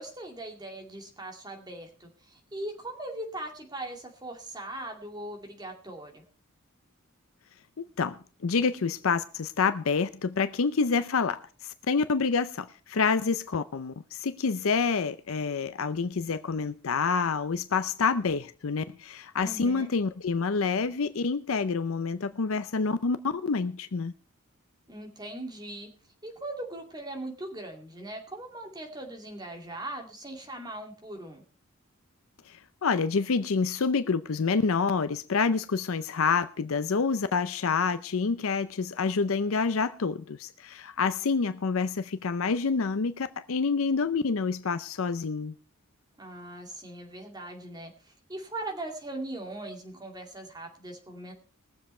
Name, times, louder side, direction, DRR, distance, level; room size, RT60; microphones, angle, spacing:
voice 1, 0.0-6.2 19.4-19.9 24.9-25.9 26.2-31.4 46.2-51.3, right 1 dB, 20° right, 2.3 m, -40 dB
voice 2, 7.8-24.1 32.5-45.5, left 5 dB, 70° left, 0.6 m, -28 dB
20.5 x 7.4 x 4.3 m
head